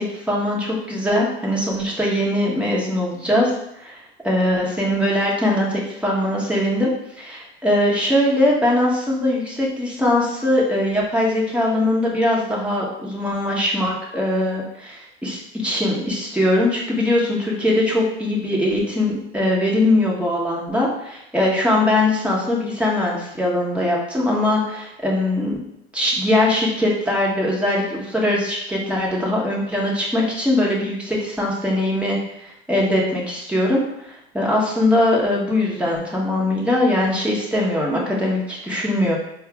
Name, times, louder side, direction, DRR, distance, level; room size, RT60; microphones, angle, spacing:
voice 1, 0.0-3.5 3.8-4.0 4.2-6.9 7.2-25.6 25.9-39.2, left 1 dB, 5° right, -4 dB, 1.0 m, -21 dB
4.4 x 2.0 x 3.4 m, 0.79 s
hypercardioid pair, 90°, 32 cm